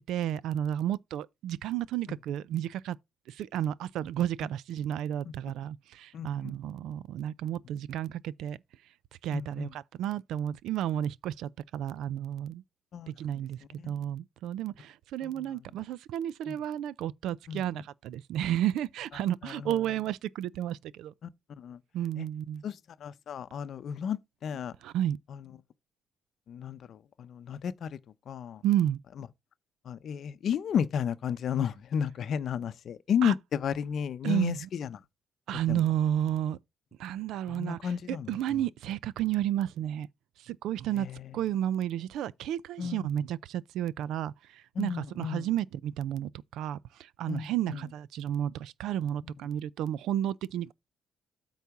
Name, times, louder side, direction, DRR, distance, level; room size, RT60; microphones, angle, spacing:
voice 1, 0.1-3.0 3.3-8.6 9.2-12.6 13.1-21.1 21.9-22.6 24.8-25.2 28.6-29.0 33.2-33.3 34.2-34.7 35.5-36.6 37.0-40.1 40.4-41.1 41.3-50.7, right 11 dB, 80° right, 0.4 m, -32 dB
voice 2, 6.1-6.5 9.3-9.7 12.9-13.1 13.8-13.9 15.2-15.4 16.5-16.6 17.5-17.8 19.4-19.8 21.2-21.3 21.6-21.8 22.2-22.3 22.6-24.7 25.3-25.5 26.5-28.0 28.3-28.6 29.2-29.3 29.9-35.0 35.7-35.8 37.5-38.6 41.0-41.4 42.8-43.2 44.8-45.5 47.3-47.8, left 8 dB, 45° left, 0.6 m, -33 dB
8.4 x 4.0 x 5.8 m
cardioid pair, 165°, 0 cm